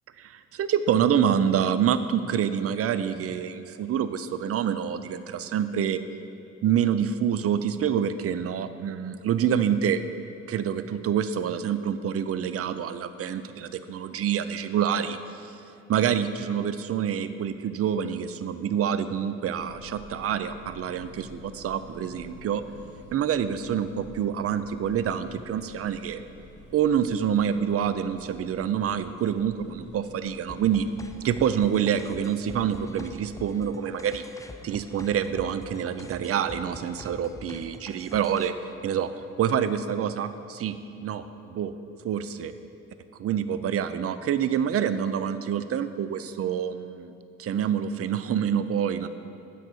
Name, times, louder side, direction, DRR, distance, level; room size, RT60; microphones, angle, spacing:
voice 1, 0.2-6.0 6.6-10.0 10.5-15.2 15.9-22.6 23.1-26.2 26.7-30.9 31.2-34.2 34.6-38.5 38.8-39.1 39.4-41.7 42.0-42.5 43.2-47.1 47.4-49.1, right 8 dB, 50° right, 12 dB, 0.5 m, -27 dB
sound 1, 19.6-33.7, left 2 dB, 35° left, 1.3 m, -50 dB
sound 2, 30.5-38.5, left 2 dB, 10° left, 0.4 m, -46 dB
9.5 x 4.2 x 6.8 m, 2.8 s
cardioid pair, 90°, 30 cm